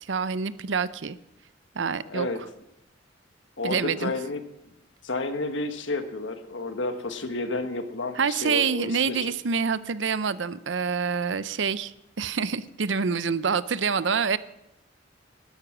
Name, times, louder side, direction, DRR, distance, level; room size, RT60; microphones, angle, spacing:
voice 1, 0.1-1.2 1.8-2.3 3.6-4.1 8.2-14.4, right 5 dB, 75° right, 16 dB, 0.6 m, -26 dB
voice 2, 2.0-2.4 3.6-4.4 5.0-9.3, left 2 dB, 85° left, 8 dB, 1.3 m, -31 dB
12.5 x 11.5 x 6.1 m, 0.86 s
head